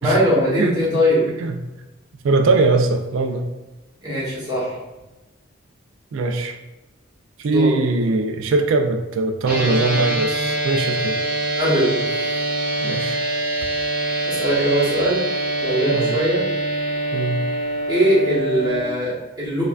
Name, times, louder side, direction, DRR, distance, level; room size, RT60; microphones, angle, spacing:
voice 1, 0.0-1.3 4.0-4.7 7.4-7.7 11.6-11.9 14.2-15.2 15.6-16.4 17.9-19.6, equal, 20° right, -9 dB, 1.3 m, -20 dB
voice 2, 1.3-1.6 2.2-3.5 6.1-6.6 7.4-11.2 12.8-13.2 15.9-16.2 17.1-17.4, right 3 dB, 70° right, 4 dB, 0.3 m, -21 dB
sound 1, 9.4-18.8, right 2 dB, 45° right, 0.7 m, -24 dB
4.6 x 2.2 x 2.3 m, 1.1 s
head